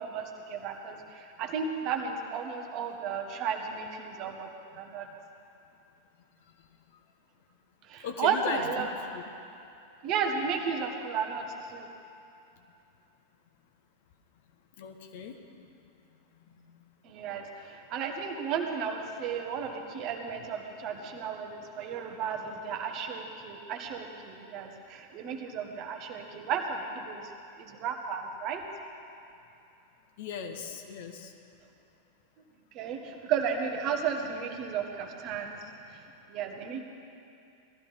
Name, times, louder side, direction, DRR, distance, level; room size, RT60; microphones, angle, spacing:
voice 1, 0.0-5.1 7.9-8.9 10.0-11.9 17.0-27.3 27.6-28.6 32.7-36.0 36.3-36.8, right 6 dB, 40° right, 3 dB, 1.7 m, -34 dB
voice 2, 8.0-8.9 9.1-9.2 14.8-15.4 16.4-16.6 30.2-31.3, left 6 dB, 50° left, 5 dB, 1.3 m, -38 dB
18.5 x 13.5 x 5.6 m, 2.7 s
figure-of-eight pair, 90°, 0 cm